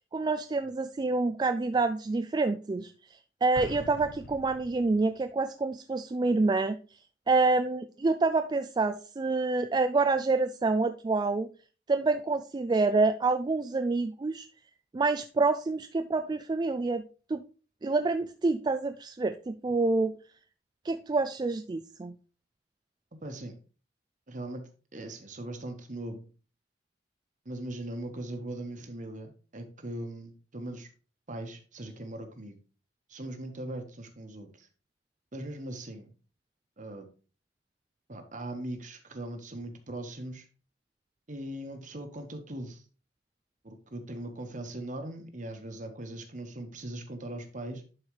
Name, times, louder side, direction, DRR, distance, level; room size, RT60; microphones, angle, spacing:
voice 1, 0.1-2.9 3.4-6.8 7.3-11.5 11.9-14.5 14.9-17.0 17.3-17.4 17.8-20.1 20.8-22.1, right 3 dB, 25° right, 8 dB, 0.3 m, -27 dB
Explosion, 3.5-5.2, left 2 dB, 75° left, 0.8 m, -44 dB
voice 2, 23.2-23.5 24.3-26.3 27.4-30.9 31.3-32.6 33.1-34.7 35.3-36.1 36.8-37.1 38.1-40.5 41.3-42.8 43.6-47.8, right 1 dB, 45° right, 6 dB, 1.3 m, -40 dB
11.0 x 4.6 x 3.2 m, 0.36 s
head